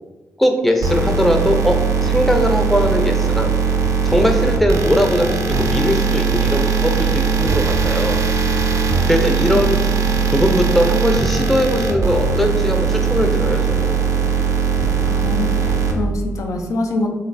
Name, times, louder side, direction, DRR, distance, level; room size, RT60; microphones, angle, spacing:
voice 1, 0.4-3.5 4.0-8.2 9.1-9.8 10.3-14.0, equal, 5° left, 3 dB, 0.5 m, -19 dB
sound 1, 0.8-15.9, right 5 dB, 80° right, 0.5 m, -19 dB
voice 2, 9.5-10.0 15.0-17.1, left 3 dB, 75° left, 2 dB, 0.4 m, -25 dB
3.1 x 2.4 x 3.3 m, 1.2 s
cardioid pair, 55°, 6 cm